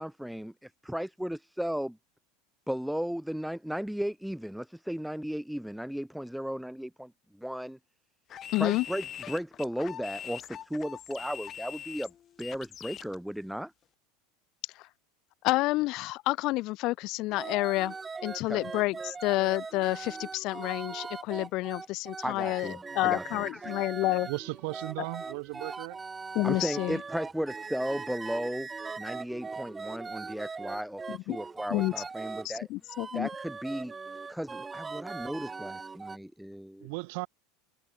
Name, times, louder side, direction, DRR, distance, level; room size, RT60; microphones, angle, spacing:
voice 1, 0.0-2.0 2.7-7.8 8.6-12.1 12.4-13.7 18.5-18.6 22.2-23.8 26.4-28.7 29.0-32.7 33.1-33.9 34.3-36.9, equal, ahead, 2.6 m, -35 dB
sound 1, 8.3-13.1, left 10 dB, 35° left, 2.4 m, -43 dB
voice 2, 8.5-8.8 14.8-14.9 15.4-17.9 18.2-24.3 26.3-27.0 31.1-31.4 31.7-31.9 32.4-33.3, left 20 dB, 55° left, 1.5 m, -29 dB
sound 2, 17.3-32.5 32.9-36.2, right 4 dB, 15° right, 2.7 m, -40 dB
voice 3, 24.2-26.0 36.8-37.3, right 31 dB, 65° right, 2.7 m, -36 dB
supercardioid pair, 110°, 0 cm